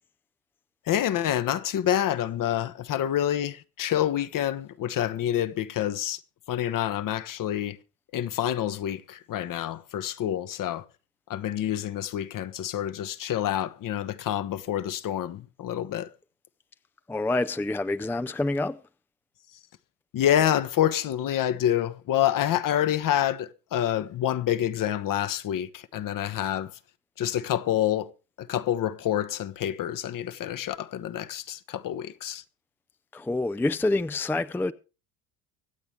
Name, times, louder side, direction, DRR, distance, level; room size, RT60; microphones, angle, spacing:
voice 1, 0.9-6.2 6.5-7.8 8.1-10.8 11.3-16.1 20.1-26.7 27.2-28.1 28.4-32.4, left 11 dB, 45° left, 1.1 m, -27 dB
voice 2, 17.1-18.8 33.1-34.7, left 2 dB, 5° left, 0.5 m, -27 dB
24.5 x 8.2 x 3.4 m
hypercardioid pair, 70°, 44 cm